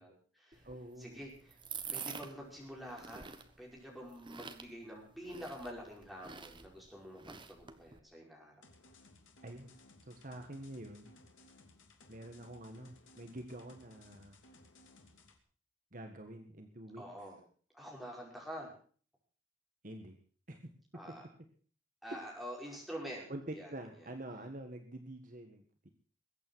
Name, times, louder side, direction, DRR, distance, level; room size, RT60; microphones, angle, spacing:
voice 1, 0.0-0.7 1.0-1.6 1.9-3.3 3.6-8.5 17.0-17.4 17.7-18.7 20.9-21.2 22.0-23.7, equal, ahead, -2 dB, 5.4 m, -47 dB
sound 1, 0.5-8.0, right 6 dB, 25° right, 1.2 m, -48 dB
voice 2, 0.6-1.2 9.4-9.7 10.0-11.1 12.1-14.4 15.9-17.3 19.8-20.2 20.5-20.7 23.3-25.9, right 1 dB, 40° right, 5 dB, 1.6 m, -47 dB
sound 2, 8.6-15.4, left 2 dB, 80° left, 3.0 m, -61 dB
21.5 x 8.9 x 6.3 m, 0.44 s
head